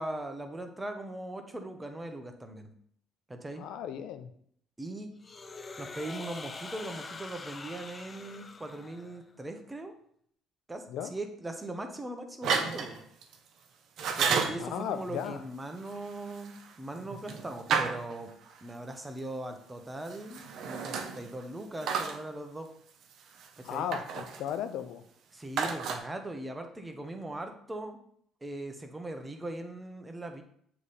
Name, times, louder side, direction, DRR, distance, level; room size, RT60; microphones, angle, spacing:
voice 1, 0.0-2.7 3.3-3.7 4.8-5.1 5.8-9.9 10.7-13.0 14.2-18.3 18.6-22.7 23.6-23.9 25.3-28.0 28.4-30.4, right 1 dB, 15° right, 5 dB, 1.0 m, -40 dB
voice 2, 3.6-4.3 10.9-11.1 14.6-15.4 23.6-25.0, left 9 dB, 75° left, 10 dB, 0.5 m, -35 dB
sound 1, 5.2-9.3, left 3 dB, 30° left, 0.6 m, -44 dB
sound 2, 12.4-13.3 14.0-14.7 15.9-18.6 20.0-21.4 21.8-22.2 23.4-24.5 25.6-26.0, right 5 dB, 65° right, 0.8 m, -32 dB
7.3 x 3.3 x 4.2 m, 0.66 s
supercardioid pair, 80°, 0 cm